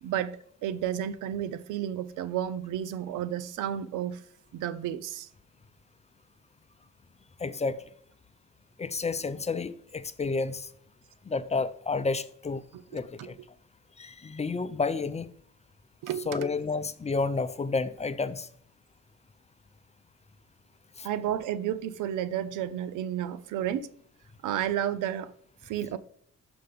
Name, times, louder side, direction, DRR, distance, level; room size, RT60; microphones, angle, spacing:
voice 1, 0.0-4.2 4.5-5.3 12.7-12.8 13.2-13.3 16.0-16.4 21.0-23.9 24.4-25.3 25.6-26.0, right 10 dB, 90° right, 0.6 m, -32 dB
voice 2, 7.4-7.8 8.8-10.7 11.3-12.6 12.9-13.4 14.0-15.3 16.3-18.5 21.0-21.1, left 4 dB, 20° left, 0.5 m, -30 dB
6.6 x 5.2 x 5.2 m
cardioid pair, 90°, 30 cm